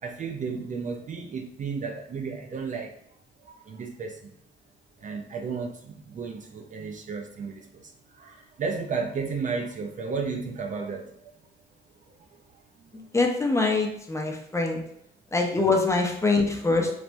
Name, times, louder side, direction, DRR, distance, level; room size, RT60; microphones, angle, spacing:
voice 1, 0.0-3.0 3.4-4.4 5.0-11.3 12.1-12.4 12.8-13.0 14.8-14.9 15.6-15.7, right 5 dB, 40° right, 3 dB, 0.4 m, -34 dB
voice 2, 13.1-14.8 15.3-16.9, left 3 dB, 15° left, 1 dB, 0.5 m, -24 dB
3.3 x 2.0 x 2.6 m, 0.71 s
cardioid pair, 90°, 20 cm